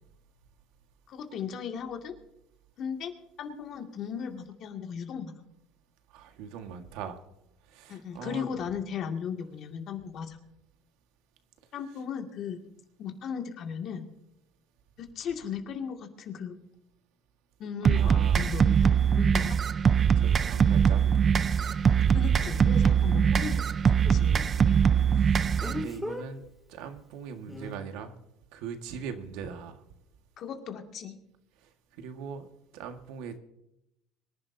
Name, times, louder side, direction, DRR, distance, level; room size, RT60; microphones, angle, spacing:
voice 1, 1.1-2.2 2.8-3.1 3.4-5.4 7.9-10.4 11.7-12.6 13.0-14.1 15.0-16.6 17.6-19.6 22.1-23.6 24.1-24.8 30.4-31.2, left 7 dB, 50° left, 3 dB, 2.3 m, -36 dB
voice 2, 6.1-7.2 7.7-8.5 17.9-18.4 20.1-21.4 25.1-26.4 26.7-28.1 28.5-29.7 32.0-32.5 32.7-33.4, right 6 dB, 80° right, 6 dB, 1.7 m, -40 dB
sound 1, 17.9-25.8, right 7 dB, 35° right, 0.5 m, -22 dB
Speech, 20.3-20.4 25.6-26.2 27.5-27.7, left 1 dB, 5° left, 2.5 m, -36 dB
24.5 x 11.0 x 2.8 m, 0.85 s
cardioid pair, 115°, 0 cm